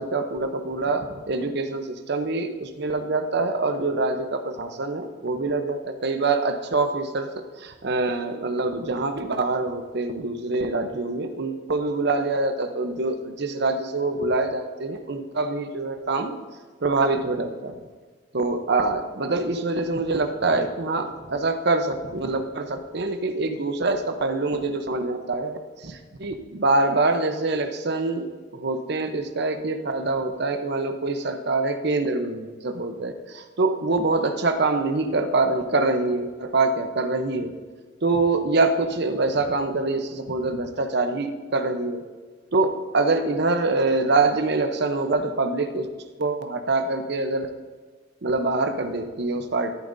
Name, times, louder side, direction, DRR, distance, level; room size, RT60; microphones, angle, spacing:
voice 1, 0.0-7.3 7.6-16.3 16.8-17.9 18.3-37.5 38.0-42.0 42.5-45.9 46.2-47.5 48.2-49.7, right 3 dB, 60° right, 7 dB, 0.8 m, -25 dB
13.5 x 8.9 x 2.7 m, 1.4 s
head